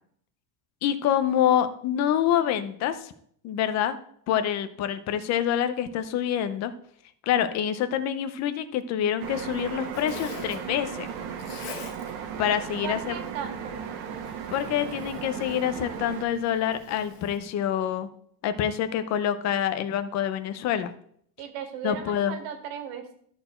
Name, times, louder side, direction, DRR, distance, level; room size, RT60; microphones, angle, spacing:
voice 1, 0.8-3.1 3.4-4.0 4.3-6.7 7.2-11.1 12.4-13.1 14.5-18.1 18.4-20.9 21.8-22.4, left 10 dB, 35° left, 11 dB, 0.6 m, -26 dB
Zipper (clothing), 9.2-17.4, left 7 dB, 85° left, 1.8 m, -46 dB
sound 1, 9.2-16.2, right 8 dB, 55° right, 1.2 m, -36 dB
voice 2, 12.8-13.9 21.4-23.1, right 7 dB, 70° right, 6 dB, 1.8 m, -36 dB
13.0 x 4.5 x 4.3 m, 0.63 s
cardioid pair, 180°, 47 cm